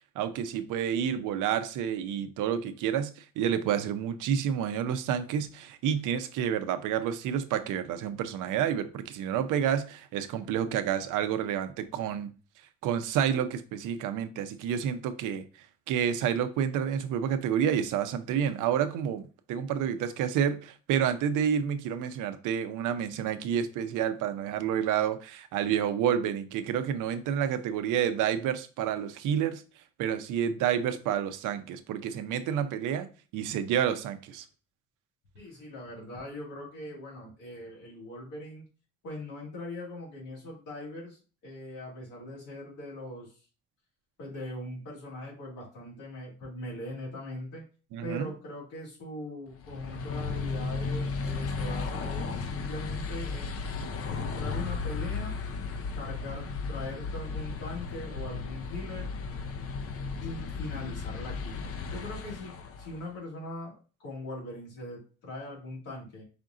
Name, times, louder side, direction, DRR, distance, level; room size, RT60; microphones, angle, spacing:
voice 1, 0.2-12.3 12.8-15.4 15.9-19.2 19.5-29.6 30.0-33.1 33.3-34.5 47.9-48.3, right 9 dB, 90° right, 0.6 m, -29 dB
voice 2, 35.3-38.7 39.0-43.4 44.2-47.6 48.0-53.7 54.1-55.4 55.9-59.1 60.2-61.6 61.9-62.5 62.8-66.2, left 1 dB, 90° left, 2.3 m, -41 dB
sound 1, 49.6-63.1, left 4 dB, 50° left, 0.6 m, -35 dB
5.1 x 2.5 x 3.7 m
cardioid pair, 90°, 30 cm